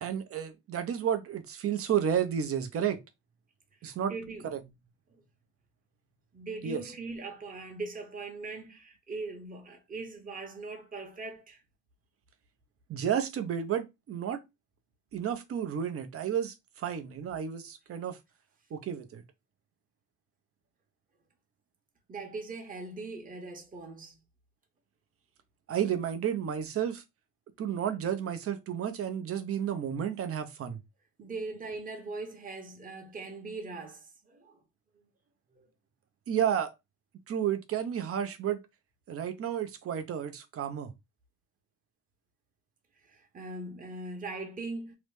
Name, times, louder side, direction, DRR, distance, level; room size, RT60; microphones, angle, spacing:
voice 1, 0.0-3.0 3.8-4.1 4.4-4.6 6.6-6.8 12.9-14.4 15.1-18.2 18.7-19.2 25.7-27.0 27.6-30.8 36.3-36.7 37.3-38.6 39.1-40.9, right 9 dB, 50° right, 0.6 m, -31 dB
voice 2, 3.8-4.7 5.1-5.2 6.3-11.6 22.1-24.2 31.2-34.6 35.6-35.7 43.1-44.9, right 3 dB, 30° right, 0.9 m, -40 dB
2.9 x 2.0 x 3.3 m
cardioid pair, 90°, 30 cm